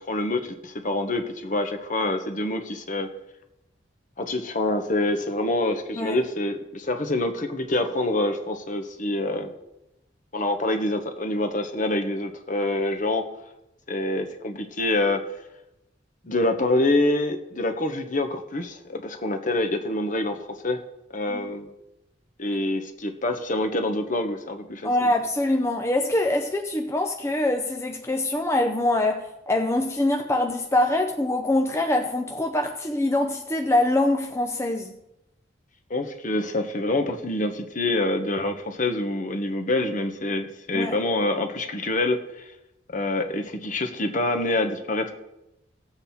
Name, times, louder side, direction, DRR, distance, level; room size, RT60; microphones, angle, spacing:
voice 1, 0.0-3.1 4.2-9.5 10.3-13.3 13.9-15.2 16.2-20.8 21.1-21.7 22.4-25.1 35.9-42.4 42.9-45.1, left 2 dB, 45° left, 1.3 m, -26 dB
voice 2, 24.8-35.0 40.7-41.0, left 1 dB, 15° left, 0.7 m, -24 dB
17.5 x 7.8 x 4.3 m
head